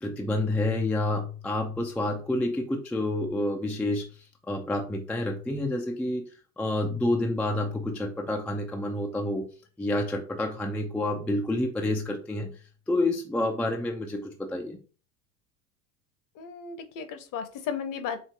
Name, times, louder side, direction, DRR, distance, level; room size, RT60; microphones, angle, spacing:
voice 1, 0.0-4.1 4.5-6.2 6.6-9.4 9.8-12.5 12.9-14.8, left 1 dB, 5° left, 2 dB, 0.4 m, -28 dB
voice 2, 16.4-18.2, left 7 dB, 45° left, 9 dB, 0.9 m, -34 dB
4.6 x 3.1 x 2.8 m, 0.37 s
hypercardioid pair, 75°, 47 cm